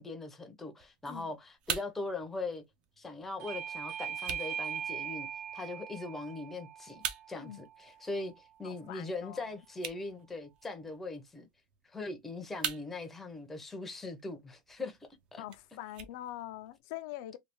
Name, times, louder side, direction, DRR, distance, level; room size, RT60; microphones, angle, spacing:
voice 1, 0.0-2.6 3.0-5.3 5.5-7.0 7.3-11.5 11.9-15.0 15.3-15.4, left 3 dB, 10° left, 0.6 m, -40 dB
sound 1, 0.8-16.8, right 8 dB, 35° right, 0.5 m, -46 dB
Bell / Doorbell, 3.4-8.6, right 8 dB, 60° right, 1.2 m, -41 dB
voice 2, 8.6-9.5 15.4-17.4, left 14 dB, 60° left, 0.4 m, -44 dB
3.2 x 2.3 x 2.9 m
supercardioid pair, 160°, 3 cm